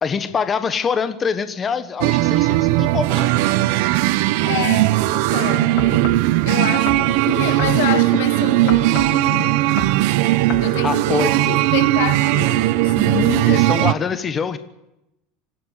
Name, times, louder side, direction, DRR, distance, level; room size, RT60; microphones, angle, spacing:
voice 1, 0.0-3.3 10.7-11.4 13.5-14.6, left 6 dB, 20° left, 1.2 m, -24 dB
sound 1, 2.0-13.9, right 17 dB, 65° right, 0.9 m, -18 dB
voice 2, 4.4-5.8 6.5-9.6 10.6-13.6 14.1-14.4, left 12 dB, 85° left, 2.0 m, -28 dB
sound 2, 5.8-6.3 6.9-8.2 8.7-9.2 9.6-10.0 10.5-10.7 11.3-11.4, left 15 dB, 45° left, 1.1 m, -31 dB
25.5 x 16.0 x 8.3 m
supercardioid pair, 165°, 0 cm